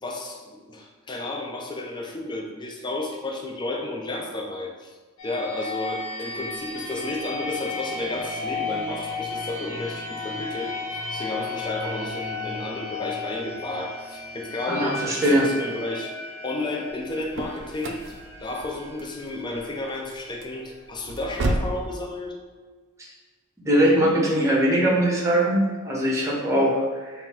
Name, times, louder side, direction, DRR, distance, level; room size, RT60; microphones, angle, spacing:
voice 1, 0.0-5.0 5.2-16.1 16.4-18.2 18.4-22.4, left 2 dB, 20° left, 1 dB, 0.4 m, -32 dB
sound 1, 5.2-20.8, left 3 dB, 85° left, 0.9 m, -34 dB
voice 2, 14.7-15.5 23.6-27.1, right 1 dB, 15° right, -4 dB, 0.8 m, -21 dB
sound 2, 16.9-21.9, right 2 dB, 55° right, 0.5 m, -32 dB
3.8 x 2.5 x 4.3 m, 1.4 s
head